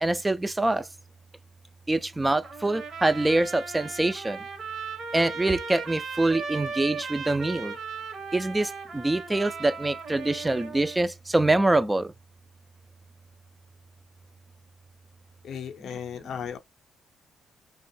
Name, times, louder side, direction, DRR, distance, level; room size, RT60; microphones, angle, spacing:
voice 1, 0.0-0.9 1.9-4.4 5.1-7.7 8.3-12.1, right 2 dB, 15° right, 0.3 m, -25 dB
Trumpet, 2.4-11.0, right 5 dB, 55° right, 0.9 m, -37 dB
voice 2, 15.4-16.6, left 8 dB, 65° left, 0.4 m, -35 dB
2.6 x 2.2 x 2.6 m
cardioid pair, 90°, 0 cm